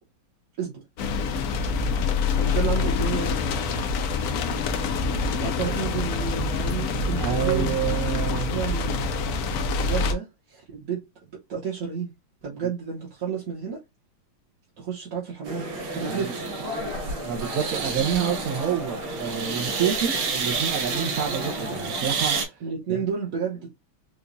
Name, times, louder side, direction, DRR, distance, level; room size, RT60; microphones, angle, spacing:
sound 1, 1.0-10.1, left 4 dB, 75° left, 0.8 m, -26 dB
voice 1, 2.4-3.6 5.4-7.7 8.3-8.9 9.8-11.0 11.5-12.1 12.4-13.8 14.8-15.7 15.9-16.4 22.6-23.7, right 7 dB, 50° right, 1.2 m, -31 dB
voice 2, 7.2-8.6 12.6-12.7 16.1-16.3 17.2-22.6 22.9-23.0, right 8 dB, 70° right, 0.8 m, -28 dB
sound 2, 15.4-22.5, right 4 dB, 90° right, 1.9 m, -29 dB
4.8 x 2.3 x 2.6 m
omnidirectional pair, 2.2 m